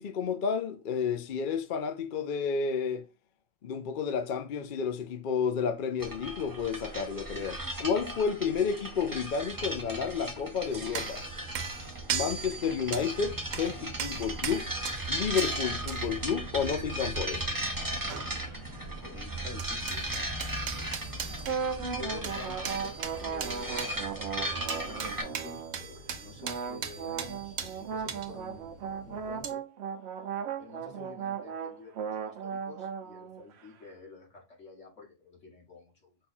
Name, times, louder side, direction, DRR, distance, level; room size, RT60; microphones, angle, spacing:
voice 1, 0.0-3.0 3.6-11.2 12.1-14.7 15.1-17.5, left 6 dB, 55° left, 0.6 m, -31 dB
sound 1, 6.0-25.2, right 1 dB, 20° right, 0.8 m, -36 dB
sound 2, 10.7-19.1 19.3-29.5, right 6 dB, 90° right, 1.1 m, -40 dB
voice 2, 18.0-18.6 19.0-20.3 21.8-29.6 30.6-36.2, left 4 dB, 70° left, 2.5 m, -48 dB
sound 3, 21.4-25.8 26.4-33.7, right 7 dB, 65° right, 0.8 m, -37 dB
5.4 x 2.3 x 4.2 m
omnidirectional pair, 1.3 m